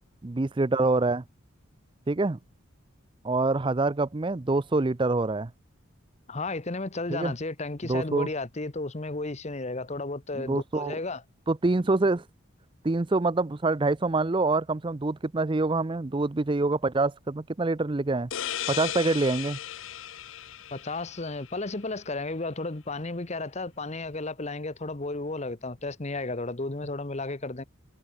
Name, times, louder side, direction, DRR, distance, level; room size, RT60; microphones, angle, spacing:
voice 1, 0.2-1.2 2.1-2.4 3.2-5.5 7.1-7.3 7.8-8.3 10.3-11.0 11.5-12.2 12.8-18.3 18.7-19.6, right 3 dB, 25° right, 0.5 m, -26 dB
voice 2, 6.3-11.2 20.7-27.6, left 2 dB, 30° left, 1.1 m, -33 dB
sound 1, 18.3-21.8, left 11 dB, 65° left, 0.8 m, -36 dB
head